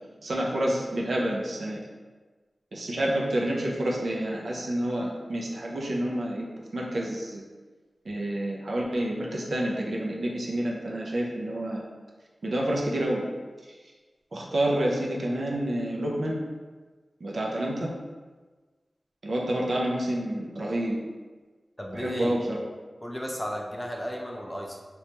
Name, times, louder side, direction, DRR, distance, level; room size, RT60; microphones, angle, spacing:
voice 1, 0.2-1.8 2.7-6.5 6.7-7.4 8.1-11.8 12.4-13.3 14.3-16.4 17.2-17.9 19.2-21.0 21.9-22.6, right 1 dB, 70° right, -2 dB, 0.5 m, -28 dB
voice 2, 21.8-22.4 23.0-24.8, equal, 10° left, -1 dB, 0.5 m, -34 dB
3.2 x 3.0 x 2.9 m, 1.3 s
wide cardioid pair, 85°, 0 cm